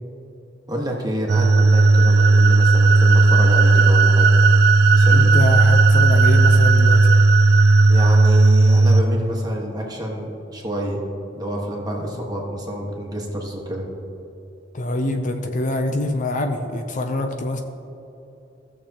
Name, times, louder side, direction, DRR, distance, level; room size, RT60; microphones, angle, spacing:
voice 1, 0.7-4.3 4.9-5.4 7.9-11.0 11.4-13.9, equal, 20° right, -1 dB, 1.5 m, -28 dB
sound 1, 1.3-9.0, right 3 dB, 55° right, 0.4 m, -14 dB
voice 2, 5.1-7.2 14.7-17.6, left 1 dB, 40° left, 5 dB, 0.5 m, -25 dB
16.0 x 6.7 x 2.9 m, 2.9 s
head